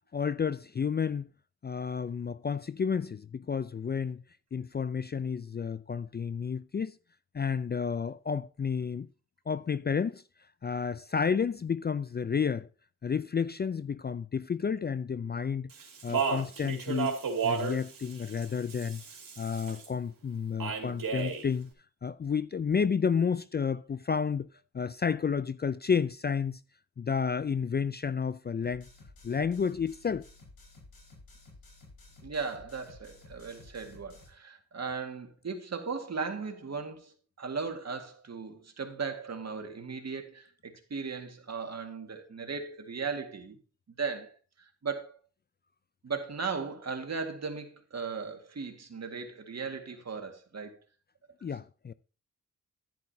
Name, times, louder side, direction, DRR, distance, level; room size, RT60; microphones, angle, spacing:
voice 1, 0.1-1.3 1.6-4.2 4.5-7.0 7.3-9.1 9.5-10.2 10.6-12.7 13.0-15.7 16.0-17.2 17.4-19.0 19.4-21.7 22.0-24.5 24.7-26.6 27.0-28.9 29.2-30.2 51.4-51.9, left 6 dB, 30° left, 0.4 m, -31 dB
Speech, 15.7-19.9 20.6-21.5, right 6 dB, 70° right, 2.6 m, -33 dB
sound 1, 28.6-34.3, left 2 dB, 85° left, 5.1 m, -54 dB
voice 2, 32.2-43.6 44.0-44.3 44.8-45.2 46.0-50.8, right 5 dB, 50° right, 1.9 m, -37 dB
10.5 x 10.5 x 2.8 m
cardioid pair, 50°, 34 cm